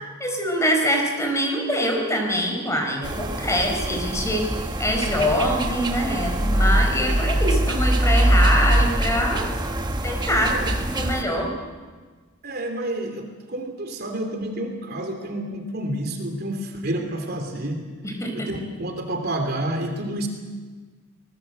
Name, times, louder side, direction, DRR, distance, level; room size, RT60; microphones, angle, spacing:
voice 1, 0.2-4.5 4.8-9.5 10.0-11.5 18.0-18.5, equal, 15° left, 2 dB, 4.5 m, -24 dB
sound 1, 3.0-11.2, right 1 dB, 20° right, 1.5 m, -23 dB
voice 2, 10.2-10.7 12.4-17.8 18.3-20.3, right 1 dB, 50° right, 4 dB, 3.2 m, -29 dB
25.5 x 20.0 x 7.9 m, 1.4 s
head